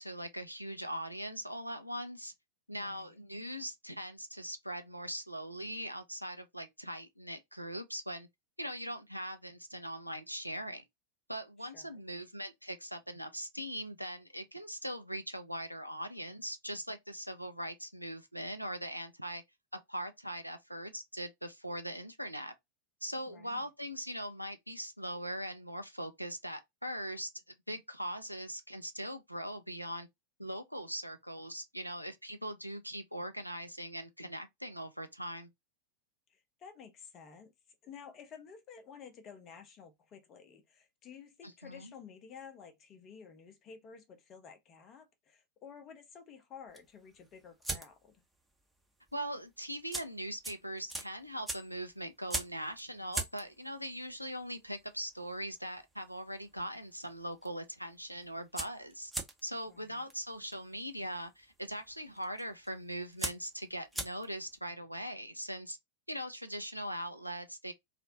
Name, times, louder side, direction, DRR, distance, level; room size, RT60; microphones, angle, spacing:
voice 1, 0.0-2.3 2.7-8.3 8.6-10.8 11.3-19.4 19.9-22.5 23.0-27.3 27.7-30.1 30.4-35.5 41.4-41.9 49.1-59.1 59.4-65.8 66.1-67.7, equal, 90° right, 0.4 m, -41 dB
voice 2, 2.8-3.2 11.6-12.0 23.3-23.7 36.3-37.5 37.8-48.2 59.7-60.1, left 6 dB, 30° left, 0.7 m, -52 dB
sound 1, 46.7-48.2 48.5-48.8 49.1-49.2 49.7-56.7 56.9-57.5 57.8-57.9 58.1-64.5, right 2 dB, 5° right, 0.6 m, -41 dB
2.4 x 2.0 x 2.7 m
figure-of-eight pair, 90°, 0 cm